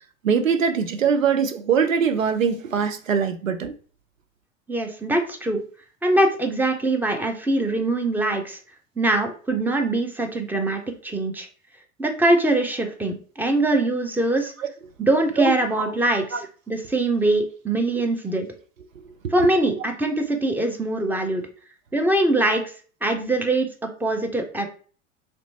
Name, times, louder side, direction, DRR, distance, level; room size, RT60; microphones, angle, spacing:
voice 1, 0.2-3.7 14.6-14.7 15.4-15.5 16.3-16.4 19.2-19.3, right 6 dB, 90° right, 0.6 m, -22 dB
voice 2, 4.7-5.6 6.0-8.6 9.0-11.5 12.0-14.5 15.0-18.5 19.3-21.4 21.9-22.6 23.0-24.7, right 2 dB, 5° right, 0.7 m, -23 dB
3.2 x 2.9 x 4.1 m
figure-of-eight pair, 80°, 38 cm